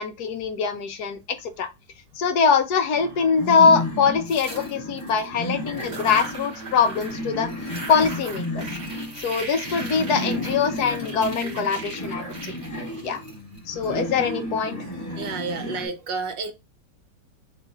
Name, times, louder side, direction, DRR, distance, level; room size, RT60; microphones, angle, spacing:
voice 1, 0.0-1.7 2.2-7.5 7.9-8.7 9.2-12.5 13.0-13.2 13.7-14.8, left 5 dB, 65° left, 1.3 m, -23 dB
sound 1, 2.9-15.9, left 1 dB, 10° left, 1.5 m, -33 dB
Frosty Crack, 4.2-5.2 5.7-7.2 7.5-13.9, right 3 dB, 45° right, 2.7 m, -38 dB
voice 2, 15.2-16.5, right 4 dB, 85° right, 1.6 m, -30 dB
4.1 x 3.8 x 3.4 m
omnidirectional pair, 1.9 m